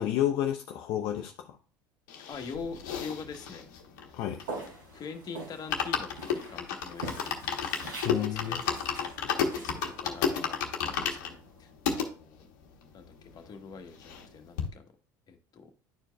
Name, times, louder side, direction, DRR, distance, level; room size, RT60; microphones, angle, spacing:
voice 1, 0.0-1.6 4.1-4.4 8.0-8.6, left 11 dB, 60° left, 2 dB, 0.6 m, -30 dB
sound 1, 2.1-4.9 5.2-5.3 5.5-12.1 12.7-12.8 12.9-13.0 13.3-14.3 14.6-14.7, left 7 dB, 75° left, 1.0 m, -32 dB
voice 2, 2.3-3.7 4.6-7.4 8.4-8.7 9.5-12.5 12.9-14.9 15.3-15.7, left 5 dB, 40° left, 5 dB, 1.2 m, -44 dB
Walk footsteps, 4.4-11.5, right 2 dB, 85° right, 3.4 m, -45 dB
10.5 x 4.6 x 2.3 m, 0.37 s
hypercardioid pair, 70°, 10 cm